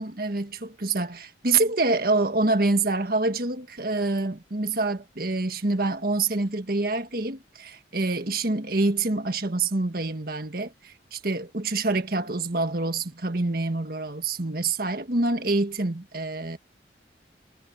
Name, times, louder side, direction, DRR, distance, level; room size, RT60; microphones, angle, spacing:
voice 1, 0.0-16.6, right 3 dB, 55° right, 1.7 m, -26 dB
head